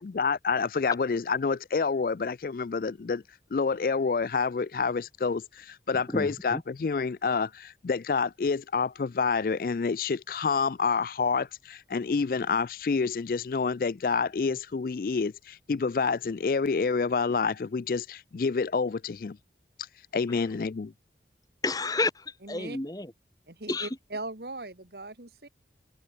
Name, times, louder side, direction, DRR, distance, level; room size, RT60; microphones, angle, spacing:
voice 1, 0.0-3.2 3.5-19.4 20.1-20.9, left 5 dB, 55° left, 0.4 m, -28 dB
voice 2, 6.1-6.6 21.6-23.1 23.7-23.9, left 3 dB, 20° left, 1.7 m, -30 dB
voice 3, 22.4-22.8 23.5-25.5, right 2 dB, 65° right, 2.2 m, -39 dB
head